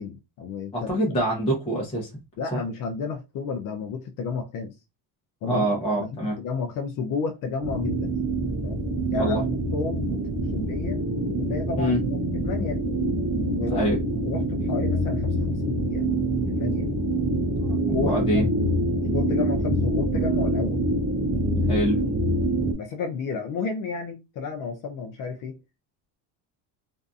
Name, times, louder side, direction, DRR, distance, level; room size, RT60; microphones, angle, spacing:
voice 1, 0.0-0.9 2.4-4.8 5.4-6.1 6.4-8.1 8.6-8.8 9.1-10.2 10.5-11.0 11.4-12.9 13.3-13.8 14.2-16.1 16.4-16.9 17.9-18.6 18.9-20.8 22.7-25.6, left 5 dB, 45° left, 0.4 m, -32 dB
voice 2, 0.7-2.1 2.5-2.6 5.5-6.4 9.1-9.4 11.8-12.0 13.7-14.0 17.6-18.4 21.7-22.0, right 1 dB, 15° left, 0.7 m, -25 dB
sound 1, 7.6-22.7, right 1 dB, 25° right, 0.4 m, -25 dB
2.6 x 2.4 x 2.3 m
cardioid pair, 140°, 46 cm